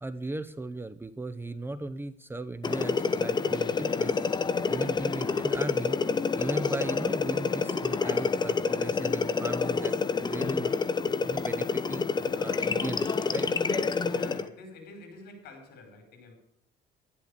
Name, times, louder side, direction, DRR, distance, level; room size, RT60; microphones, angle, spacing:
voice 1, 0.0-4.2 4.7-6.0 6.4-10.7 11.3-13.5, right 2 dB, 15° right, 0.8 m, -37 dB
sound 1, 2.6-14.5, left 5 dB, 25° left, 1.0 m, -28 dB
voice 2, 14.1-16.4, left 2 dB, 70° left, 5.4 m, -49 dB
12.0 x 11.5 x 6.7 m
cardioid pair, 110°, 17 cm